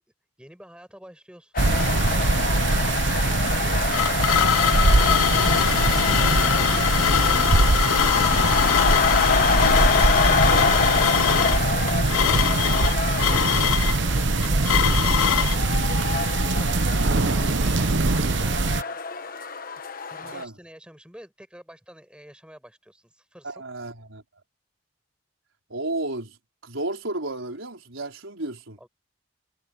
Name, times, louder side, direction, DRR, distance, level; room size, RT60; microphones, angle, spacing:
voice 1, 0.4-1.6 3.5-3.8 16.3-17.3 18.2-19.6 20.1-23.6 28.8-28.9, equal, 5° right, 7.7 m, -50 dB
sound 1, 1.5-20.4, left 4 dB, 45° left, 1.2 m, -27 dB
sound 2, 1.6-18.8, right 3 dB, 60° right, 0.9 m, -22 dB
sound 3, 3.4-15.6, left 11 dB, 85° left, 0.3 m, -23 dB
voice 2, 23.4-24.2 25.7-26.4 26.6-28.8, right 2 dB, 80° right, 4.3 m, -32 dB
head